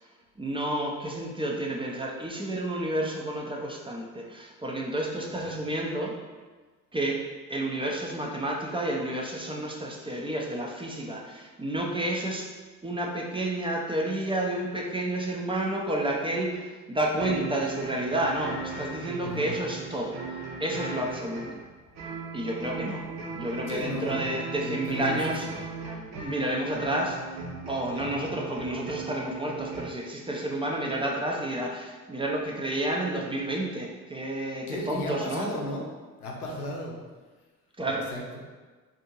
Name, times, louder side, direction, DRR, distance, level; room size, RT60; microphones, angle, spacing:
voice 1, 0.4-6.1 6.9-7.2 7.5-12.5 12.8-21.6 22.3-23.0 23.3-25.5 26.2-27.2 27.7-35.5 37.8-38.0, right 1 dB, 10° right, -1 dB, 0.4 m, -30 dB
sound 1, 17.1-29.9, right 4 dB, 40° right, 0.8 m, -38 dB
voice 2, 19.2-19.6 23.7-24.3 24.6-25.5 27.9-28.1 34.6-35.9 36.2-37.0 37.9-38.4, left 1 dB, 85° left, -1 dB, 0.6 m, -35 dB
3.6 x 2.6 x 2.8 m, 1.3 s
figure-of-eight pair, 45°, 44 cm